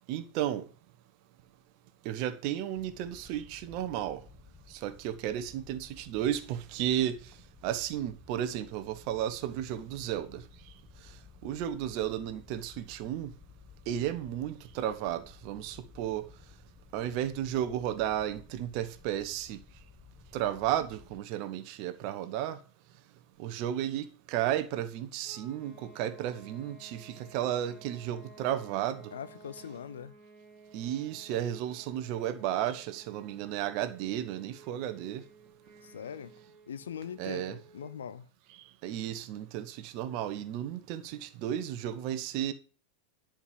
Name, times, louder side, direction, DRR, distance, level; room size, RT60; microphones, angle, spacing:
voice 1, 0.1-0.6 2.0-4.2 4.7-7.2 7.6-10.4 11.4-13.3 13.9-16.2 16.9-19.6 20.3-22.6 23.4-29.0 30.7-35.2 37.2-37.6 38.5-42.5, right 11 dB, 45° right, 1.2 m, -33 dB
sound 1, 2.7-21.2, left 5 dB, 15° left, 1.3 m, -56 dB
sound 2, 25.2-38.0, right 3 dB, 20° right, 2.3 m, -55 dB
voice 2, 29.1-30.2 35.8-36.3 36.7-38.3, left 8 dB, 65° left, 0.7 m, -41 dB
11.0 x 5.2 x 7.7 m
figure-of-eight pair, 90°, 0 cm